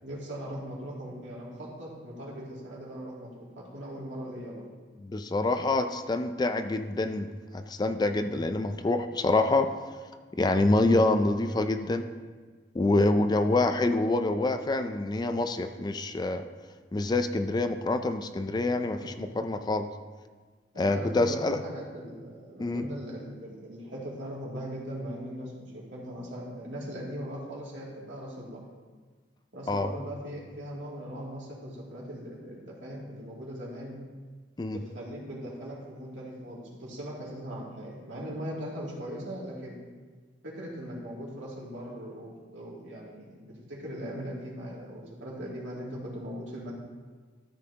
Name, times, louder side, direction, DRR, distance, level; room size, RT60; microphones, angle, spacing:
voice 1, 0.0-4.7 8.2-8.4 19.0-19.2 20.7-28.7 29.5-34.0 34.7-39.8 40.4-46.7, equal, 75° right, -5 dB, 2.5 m, -40 dB
voice 2, 5.0-9.7 10.4-12.1 12.7-16.4 16.9-19.9 20.8-21.6 22.6-22.9 29.7-29.9 34.6-34.8, left 2 dB, 20° left, 8 dB, 0.3 m, -26 dB
13.5 x 7.6 x 2.8 m, 1.5 s
head